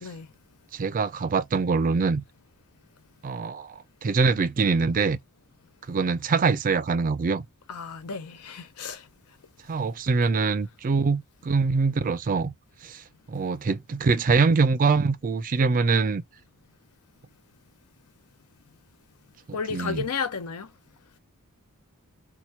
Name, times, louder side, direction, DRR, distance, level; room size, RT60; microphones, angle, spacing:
voice 1, 0.7-2.2 3.2-5.2 5.9-7.4 9.7-12.5 12.8-13.0 13.3-16.2 19.5-20.1, right 4 dB, 40° right, 0.4 m, -24 dB
voice 2, 7.7-9.1 19.5-20.7, left 5 dB, 80° left, 0.7 m, -32 dB
2.9 x 2.2 x 4.2 m
head